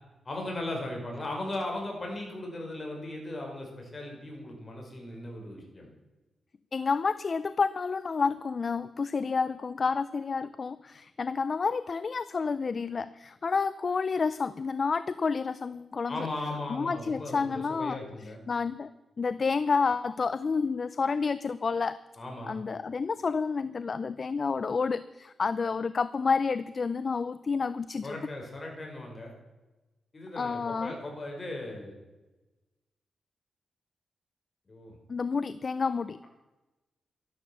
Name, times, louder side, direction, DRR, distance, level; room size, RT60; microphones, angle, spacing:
voice 1, 0.3-5.9 16.1-18.4 22.2-22.6 28.0-29.3 30.1-31.9 34.7-34.9, left 2 dB, 30° left, 0 dB, 5.4 m, -37 dB
voice 2, 6.7-16.3 16.7-18.0 18.5-18.9 19.2-22.0 22.5-28.2 30.4-30.9 35.1-36.2, left 5 dB, 45° left, 15 dB, 0.5 m, -29 dB
13.0 x 12.0 x 7.1 m, 1.1 s
cardioid pair, 95°, 0 cm